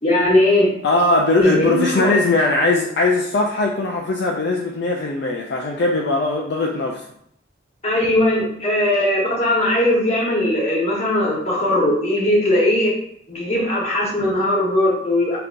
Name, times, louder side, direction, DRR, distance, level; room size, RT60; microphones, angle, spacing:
voice 1, 0.0-0.7 1.3-2.1 7.8-12.9 13.3-15.4, left 1 dB, 35° left, -4 dB, 1.2 m, -19 dB
voice 2, 0.8-7.0, left 2 dB, 60° left, -1 dB, 0.4 m, -20 dB
5.1 x 2.9 x 2.5 m, 0.70 s
head